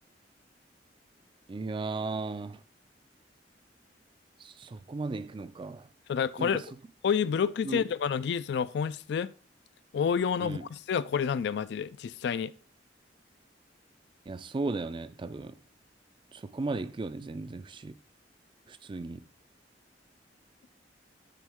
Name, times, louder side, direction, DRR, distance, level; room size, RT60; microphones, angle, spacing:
voice 1, 1.5-2.6 4.4-5.9 6.4-6.7 7.6-7.8 10.4-10.7 14.3-15.6 16.3-18.0 18.7-19.2, right 3 dB, 30° right, 0.4 m, -36 dB
voice 2, 6.1-6.6 7.0-9.3 9.9-12.5, left 7 dB, 65° left, 0.3 m, -29 dB
9.1 x 4.3 x 3.5 m
head